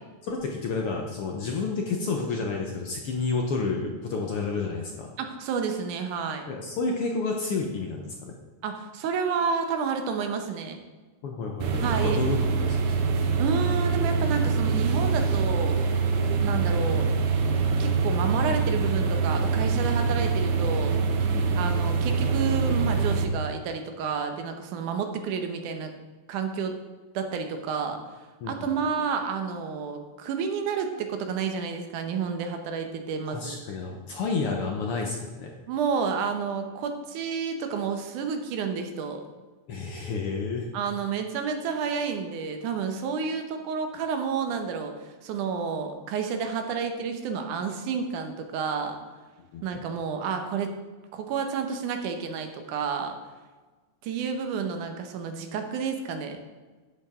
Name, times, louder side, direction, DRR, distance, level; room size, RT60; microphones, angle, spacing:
voice 1, 0.2-5.1 6.5-8.4 11.2-13.1 21.3-21.6 28.4-28.5 33.3-35.5 39.7-40.7 49.5-49.8, left 4 dB, 65° left, 1 dB, 1.4 m, -30 dB
voice 2, 5.2-6.5 8.6-10.8 11.8-12.2 13.4-15.8 16.4-17.1 17.8-21.0 21.6-25.9 26.3-26.8 27.1-28.0 28.5-33.6 35.7-39.2 40.7-49.0 49.6-50.7 51.1-53.2 54.0-56.4, right 6 dB, 85° right, 6 dB, 2.5 m, -30 dB
sound 1, 11.6-23.2, right 4 dB, 65° right, 1.4 m, -24 dB
10.5 x 8.1 x 3.6 m, 1.3 s
omnidirectional pair, 3.5 m